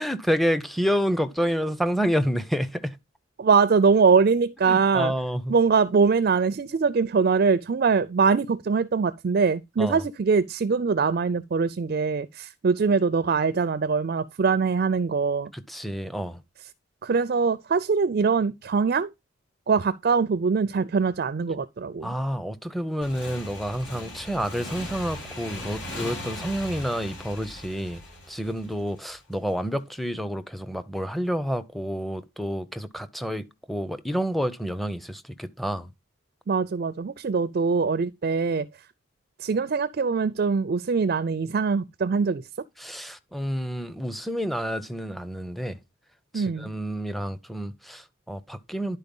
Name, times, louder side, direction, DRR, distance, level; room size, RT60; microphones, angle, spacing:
voice 1, 0.0-3.0 4.7-5.5 9.8-10.0 15.5-16.4 22.0-28.0 28.3-35.9 42.8-45.8 46.3-49.0, equal, ahead, 0.6 m, -29 dB
voice 2, 3.4-5.1 5.5-15.5 17.0-19.1 19.7-22.1 36.5-38.7 39.4-42.4 46.3-46.7, right 5 dB, 45° right, 0.4 m, -23 dB
Motorcycle / Engine, 23.0-29.4, left 1 dB, 55° left, 4.9 m, -38 dB
10.5 x 4.4 x 5.3 m
head